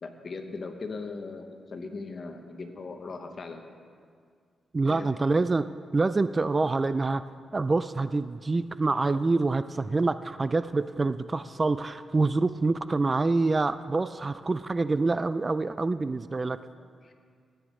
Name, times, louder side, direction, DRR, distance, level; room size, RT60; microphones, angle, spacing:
voice 1, 0.0-3.6 4.8-5.1 16.7-17.1, left 3 dB, 50° left, 6 dB, 1.0 m, -39 dB
voice 2, 4.7-5.7 5.9-7.2 7.5-16.6, right 3 dB, 30° right, 13 dB, 0.3 m, -26 dB
15.5 x 9.1 x 3.7 m, 2.1 s
cardioid pair, 80°, 0 cm